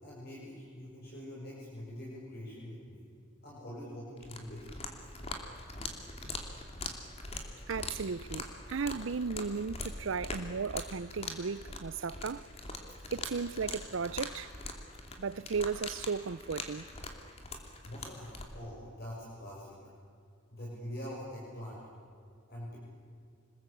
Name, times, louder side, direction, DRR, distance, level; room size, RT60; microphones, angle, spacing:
voice 1, 0.0-3.1 3.4-5.1 12.9-13.0 17.8-19.8 20.5-21.8 22.5-22.8, equal, 50° left, 6.3 m, -44 dB
sound 1, 4.2-18.5, left 2 dB, 30° left, 2.7 m, -43 dB
voice 2, 7.7-12.5 13.1-14.5 15.2-16.9, right 5 dB, 70° right, 0.6 m, -35 dB
27.0 x 21.0 x 8.5 m
head